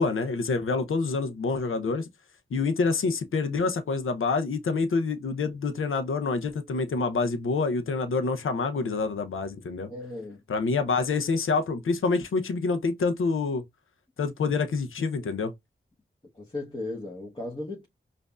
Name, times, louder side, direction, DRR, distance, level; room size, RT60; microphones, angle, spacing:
voice 1, 0.0-2.1 2.5-9.9 10.5-13.6 14.2-15.5, left 4 dB, 80° left, 0.6 m, -27 dB
voice 2, 9.9-10.4 16.3-17.9, left 2 dB, 25° left, 1.2 m, -36 dB
5.1 x 2.6 x 2.3 m
cardioid pair, 45°, 21 cm